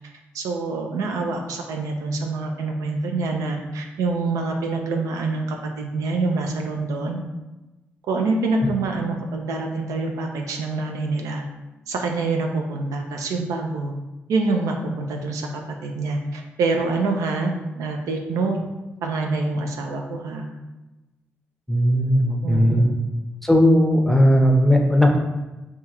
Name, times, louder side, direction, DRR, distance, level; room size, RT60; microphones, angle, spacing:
voice 1, 0.3-7.2 8.1-11.4 11.9-13.9 14.3-18.6 19.0-20.5 22.4-22.9, right 3 dB, 70° right, 2 dB, 0.4 m, -26 dB
voice 2, 21.7-22.9 23.4-25.2, equal, 5° left, 2 dB, 0.6 m, -17 dB
3.5 x 2.3 x 2.8 m, 1.1 s
hypercardioid pair, 40°, 6 cm